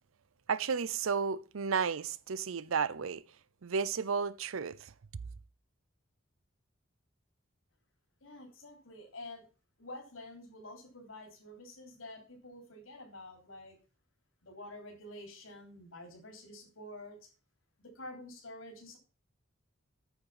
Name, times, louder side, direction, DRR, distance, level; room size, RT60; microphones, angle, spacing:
voice 1, 0.5-3.2 3.6-4.9, right 6 dB, 85° right, 0.6 m, -33 dB
voice 2, 8.2-9.5 9.8-13.8 14.4-17.3 17.8-19.0, left 1 dB, 85° left, 3.5 m, -48 dB
9.1 x 7.1 x 5.7 m
head